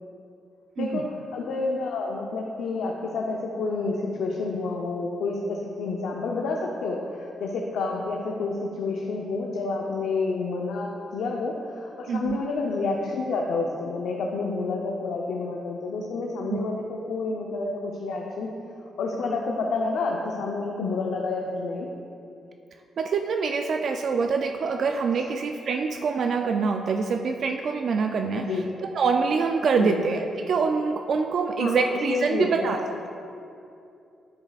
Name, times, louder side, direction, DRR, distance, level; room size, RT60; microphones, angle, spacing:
voice 1, 0.8-18.5 19.0-21.9 25.1-25.3 28.3-28.6 29.8-30.0 31.6-32.7, left 3 dB, 90° left, -1 dB, 0.6 m, -29 dB
voice 2, 12.1-12.4 16.5-16.6 23.0-28.4 28.8-32.8, right 5 dB, 60° right, 4 dB, 0.3 m, -25 dB
9.8 x 7.4 x 2.4 m, 2.6 s
cardioid pair, 120°, 0 cm